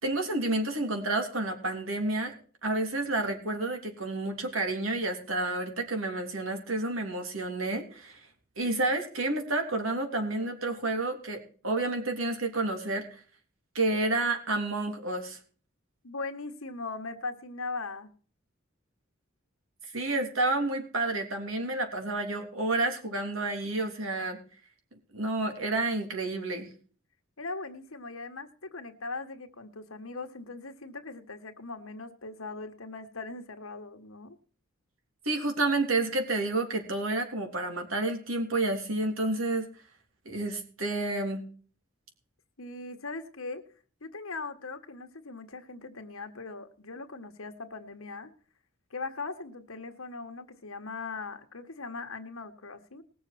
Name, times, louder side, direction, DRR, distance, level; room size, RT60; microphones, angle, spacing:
voice 1, 0.0-2.3 2.6-8.2 8.6-13.2 13.7-15.4 19.9-24.4 25.1-26.7 35.2-39.7 40.2-41.4, right 2 dB, 75° right, 4 dB, 3.2 m, -30 dB
voice 2, 16.0-18.1 27.4-34.4 42.6-43.6 44.0-48.3 48.9-53.0, left 3 dB, 90° left, 7 dB, 1.6 m, -40 dB
20.0 x 7.0 x 4.3 m, 0.42 s
head